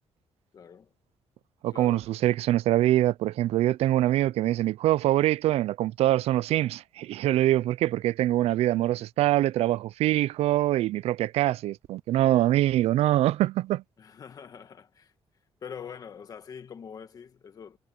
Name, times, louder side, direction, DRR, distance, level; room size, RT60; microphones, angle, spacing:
voice 1, 0.5-0.9 1.7-2.2 14.0-15.1 15.6-17.8, left 7 dB, 35° left, 1.8 m, -44 dB
voice 2, 1.6-13.8, right 14 dB, 80° right, 0.4 m, -24 dB
cardioid pair, 180°, 10 cm